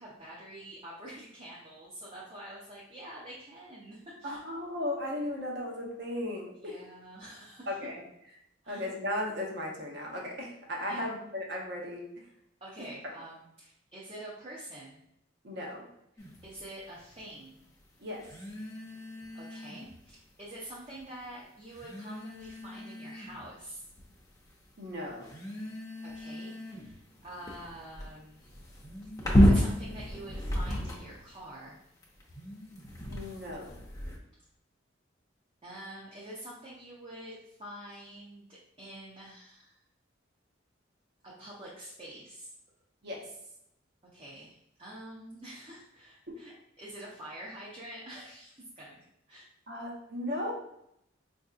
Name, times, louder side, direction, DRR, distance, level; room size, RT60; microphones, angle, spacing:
voice 1, 0.0-4.4 6.6-7.8 8.6-8.8 10.9-11.1 12.6-15.0 16.4-17.6 19.3-23.8 26.0-28.6 29.4-31.8 35.6-39.8 41.2-42.5 44.1-49.5, right 1 dB, 30° right, -6 dB, 0.6 m, -46 dB
voice 2, 4.2-6.8 7.7-8.0 8.7-12.0 15.4-15.9 18.0-18.3 24.8-25.3 33.1-33.8 43.0-43.3 49.7-50.5, left 1 dB, 60° right, -1 dB, 0.8 m, -36 dB
sound 1, 16.2-16.4 18.2-20.0 21.0-21.1 21.7-23.5 24.0-24.5 25.2-31.3 32.0-34.2, equal, 20° left, 0.6 m, -31 dB
4.4 x 2.6 x 2.4 m, 0.78 s
head